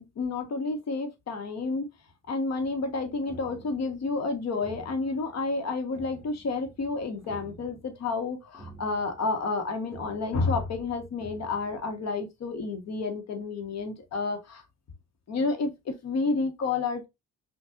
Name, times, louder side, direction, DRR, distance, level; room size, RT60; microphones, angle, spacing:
voice 1, 0.0-1.9 2.3-14.6 15.3-17.1, left 3 dB, 60° left, 1.3 m, -30 dB
sound 1, 2.6-12.2, right 3 dB, ahead, 1.4 m, -51 dB
5.7 x 2.6 x 2.4 m
cardioid pair, 90°, 30 cm